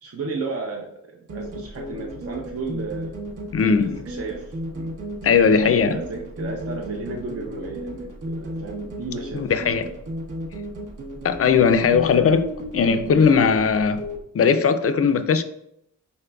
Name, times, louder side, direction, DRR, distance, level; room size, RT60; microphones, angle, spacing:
voice 1, 0.0-3.1 3.8-4.9 5.3-9.8, right 3 dB, 45° right, 0.6 m, -34 dB
sound 1, 1.3-14.2, equal, 70° right, 1.0 m, -34 dB
voice 2, 3.5-4.0 5.2-6.0 9.3-9.9 11.2-14.0 14.3-15.4, left 6 dB, 45° left, 0.4 m, -19 dB
5.2 x 4.1 x 2.3 m
wide cardioid pair, 130°, 33 cm